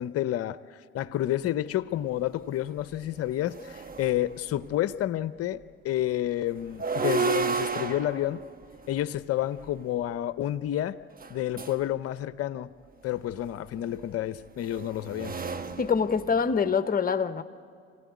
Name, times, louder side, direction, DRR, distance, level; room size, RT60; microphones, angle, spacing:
voice 1, 0.0-8.4 8.9-11.0 11.3-12.7 13.0-15.3, left 13 dB, 55° left, 15 dB, 0.7 m, -30 dB
sound 1, 2.3-2.4 2.8-4.7 6.6-9.8 11.1-11.9 13.3-16.7, right 5 dB, 30° right, 1.2 m, -33 dB
voice 2, 15.8-17.4, left 6 dB, 30° left, 10 dB, 1.1 m, -25 dB
25.0 x 16.5 x 9.5 m, 2.2 s
hypercardioid pair, 60°, 29 cm